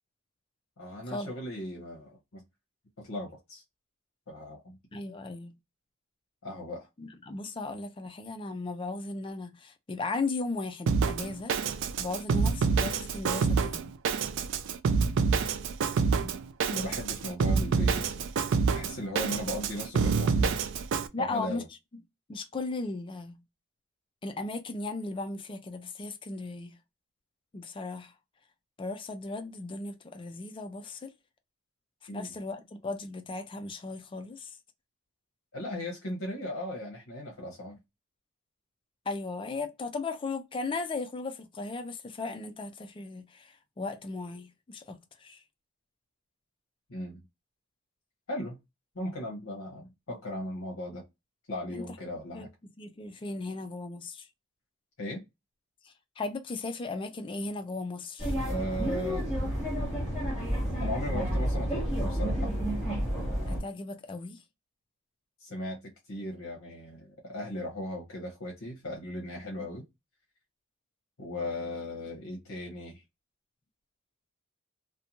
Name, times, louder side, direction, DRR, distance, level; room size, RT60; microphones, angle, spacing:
voice 1, 0.8-2.4 3.0-3.6 4.3-4.8 6.4-6.9 16.2-16.4 16.7-18.3 18.7-20.5 21.2-21.7 32.1-32.3 35.5-37.8 46.9-47.2 48.3-48.6 48.9-51.0 51.5-52.5 55.0-55.2 58.4-59.3 60.8-62.6 65.4-69.9 71.2-73.0, left 1 dB, 60° left, 0.8 m, -37 dB
voice 2, 4.9-5.5 7.0-13.9 21.1-21.6 22.3-23.4 24.2-26.8 27.5-28.1 28.8-31.1 32.1-34.6 39.1-45.4 51.7-51.8 52.3-52.5 52.8-54.3 55.8-58.4 63.5-64.4 69.6-69.7, left 3 dB, 25° left, 0.3 m, -36 dB
Drum kit, 10.9-21.1, right 5 dB, 55° right, 0.3 m, -27 dB
sound 1, 58.2-63.6, equal, 5° right, 1.0 m, -30 dB
2.6 x 2.1 x 2.8 m
head